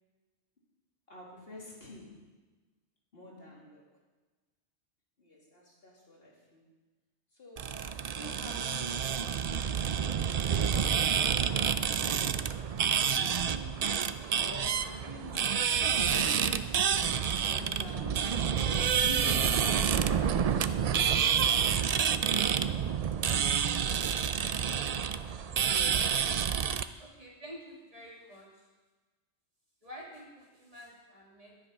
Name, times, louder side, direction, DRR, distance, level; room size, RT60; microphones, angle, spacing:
voice 1, 1.1-2.2 3.1-3.8 5.2-6.6 7.3-10.0 10.4-12.5 13.0-14.0 14.4-18.4 19.0-21.6, left 1 dB, 55° left, -4 dB, 2.9 m, -47 dB
sound 1, 7.6-26.8, right 7 dB, 65° right, 0.4 m, -28 dB
voice 2, 27.0-28.7 29.8-31.6, equal, 30° right, -3 dB, 2.3 m, -49 dB
11.0 x 10.5 x 5.5 m, 1.3 s
omnidirectional pair, 1.2 m